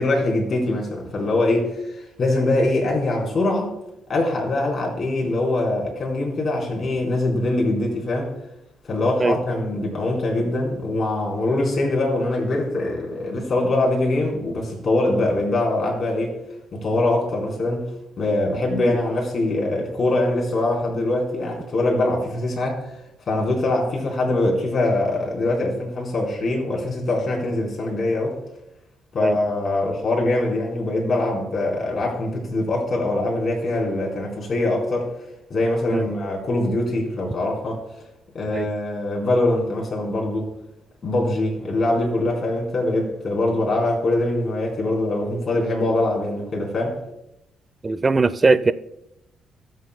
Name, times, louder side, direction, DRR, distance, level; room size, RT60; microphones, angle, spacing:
voice 1, 0.0-3.7 4.1-8.3 8.9-16.4 16.7-17.8 18.2-22.9 23.3-28.4 29.1-35.1 35.5-37.8 38.3-40.5 41.0-47.0, left 2 dB, 40° left, 4.1 m, -23 dB
voice 2, 47.8-48.7, right 3 dB, 30° right, 0.5 m, -20 dB
22.0 x 7.6 x 2.2 m
cardioid pair, 90°, 0 cm